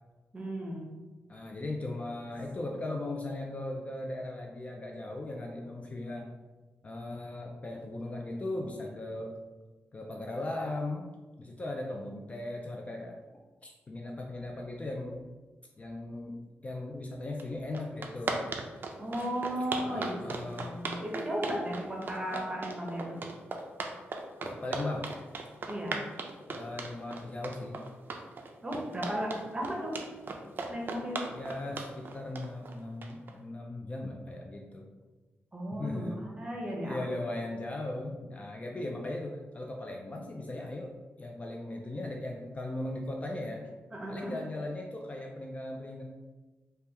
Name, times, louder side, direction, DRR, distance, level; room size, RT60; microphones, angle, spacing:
voice 1, 0.3-0.9 19.0-23.2 25.7-26.0 28.6-30.0 30.7-31.3 35.5-37.1 38.7-38.9 43.9-44.4, equal, 20° right, -2 dB, 0.8 m, -35 dB
voice 2, 1.3-6.3 6.8-9.3 9.9-11.1 11.4-13.2 13.6-15.2 15.8-16.4 16.6-18.4 19.9-20.7 24.4-25.1 26.4-27.8 31.3-34.9 35.8-36.2 36.8-40.9 41.2-43.7 44.1-46.0, left 2 dB, 30° left, 1 dB, 0.3 m, -38 dB
sound 1, 17.4-17.5 17.7-33.3, right 3 dB, 45° right, 0.4 m, -37 dB
3.3 x 2.2 x 2.8 m, 1.2 s
wide cardioid pair, 110°, 5 cm